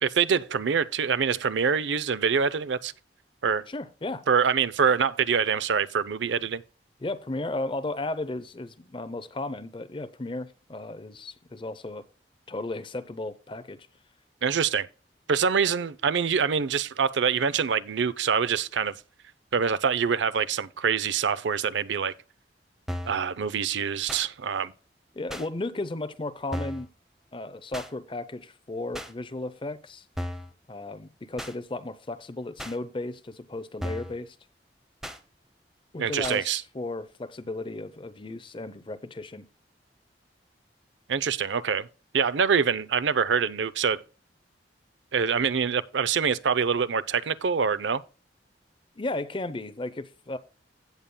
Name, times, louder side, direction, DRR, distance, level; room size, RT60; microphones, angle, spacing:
voice 1, 0.0-2.9 3.4-3.6 4.3-6.6 14.4-14.9 15.3-18.9 19.5-22.1 23.0-24.7 36.0-36.6 41.1-41.9 42.1-44.0 45.1-48.0, right 6 dB, 80° right, 0.5 m, -25 dB
voice 2, 3.7-4.3 7.0-12.0 12.5-13.9 25.1-26.9 27.3-30.1 30.7-34.4 35.9-39.5 49.0-50.4, left 2 dB, 30° left, 0.6 m, -35 dB
sound 1, 22.9-23.2 24.1-24.3 25.3-25.5 26.5-26.9 27.7-27.9 28.9-29.1 30.2-30.5 31.4-31.5 32.6-32.8 33.8-34.2 35.0-35.2 36.2-36.4, equal, 5° right, 0.8 m, -35 dB
16.0 x 6.9 x 2.2 m
head